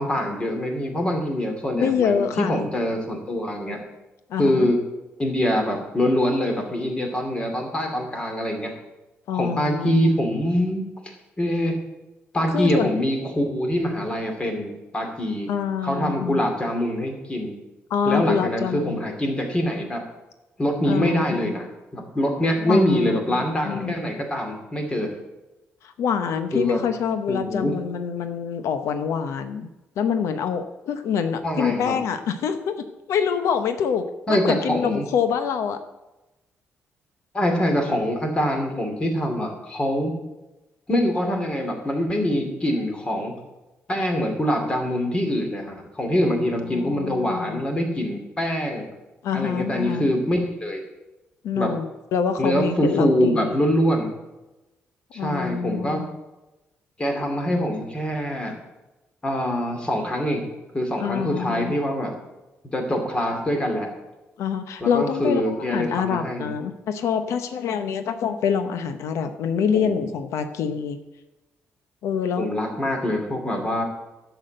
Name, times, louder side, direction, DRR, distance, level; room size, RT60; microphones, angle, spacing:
voice 1, 0.0-3.8 4.4-4.8 5.2-8.7 9.3-10.8 11.4-11.8 12.3-15.5 15.8-17.5 18.1-20.0 20.6-25.1 26.5-26.8 27.3-27.7 31.4-32.0 34.3-35.0 37.3-40.1 40.9-43.3 43.9-48.8 49.3-50.8 51.6-51.7 52.4-54.1 55.1-56.0 57.0-58.5 59.2-60.4 60.7-62.1 62.7-63.9 64.8-66.5 69.7-70.1 72.4-73.8, equal, 20° left, 3 dB, 2.5 m, -24 dB
voice 2, 1.7-2.7 4.3-4.7 9.3-10.1 12.5-12.9 15.5-16.4 17.9-19.0 20.8-21.5 22.6-23.9 25.8-29.7 30.0-35.8 46.2-47.6 49.2-50.1 51.4-53.6 55.1-56.0 61.0-61.7 64.4-71.0 72.0-72.5, left 7 dB, 90° left, 9 dB, 0.8 m, -26 dB
12.0 x 7.1 x 7.8 m, 1.0 s
cardioid pair, 155°, 5 cm